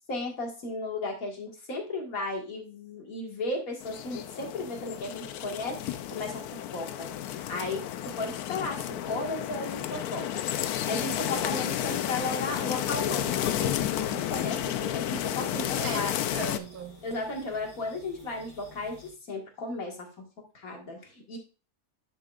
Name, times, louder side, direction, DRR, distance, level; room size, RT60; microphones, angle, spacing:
voice 1, 0.1-6.4 6.7-16.1 17.0-20.1 20.5-21.4, left 2 dB, 65° left, 2.3 m, -35 dB
sound 1, 3.8-16.6, left 11 dB, 85° left, 1.1 m, -32 dB
sound 2, 14.1-19.1, left 2 dB, 50° left, 2.5 m, -52 dB
voice 2, 15.5-17.1, right 6 dB, 75° right, 1.3 m, -39 dB
10.5 x 6.3 x 2.5 m
omnidirectional pair, 1.6 m